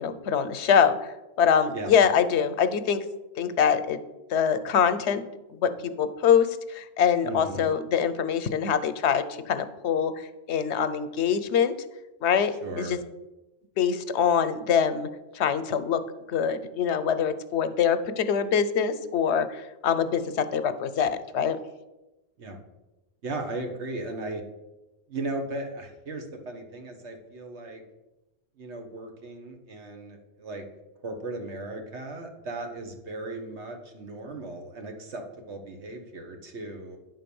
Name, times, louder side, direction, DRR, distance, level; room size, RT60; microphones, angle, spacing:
voice 1, 0.0-3.0 3.4-4.0 4.3-5.2 5.5-11.7 12.2-13.0 13.8-15.1 15.3-16.0 16.3-21.6, left 7 dB, 80° left, 11 dB, 1.0 m, -24 dB
voice 2, 7.2-7.7 12.6-13.0 22.4-22.6 23.2-24.4 25.1-27.8 28.6-30.7 31.0-37.0, right 2 dB, 85° right, 4 dB, 1.5 m, -36 dB
9.7 x 3.9 x 6.9 m, 1.0 s
omnidirectional pair, 1.1 m